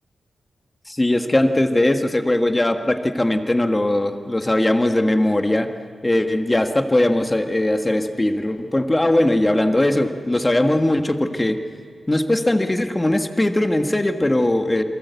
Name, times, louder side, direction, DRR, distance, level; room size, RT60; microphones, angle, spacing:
voice 1, 0.9-5.7 6.0-11.6 12.1-14.8, left 1 dB, 15° left, 6 dB, 1.5 m, -19 dB
28.5 x 23.5 x 8.3 m, 2.1 s
wide cardioid pair, 130°, 0 cm